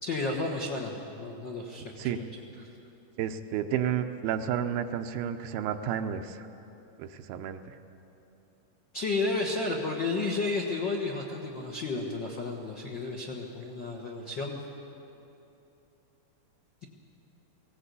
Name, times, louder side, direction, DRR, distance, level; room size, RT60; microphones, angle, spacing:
voice 1, 0.0-2.2 8.9-14.6, left 3 dB, 65° left, -2 dB, 1.1 m, -32 dB
voice 2, 3.2-6.4 7.0-7.6, right 9 dB, 80° right, 7 dB, 2.5 m, -31 dB
19.0 x 17.5 x 8.3 m, 2.9 s
omnidirectional pair, 4.3 m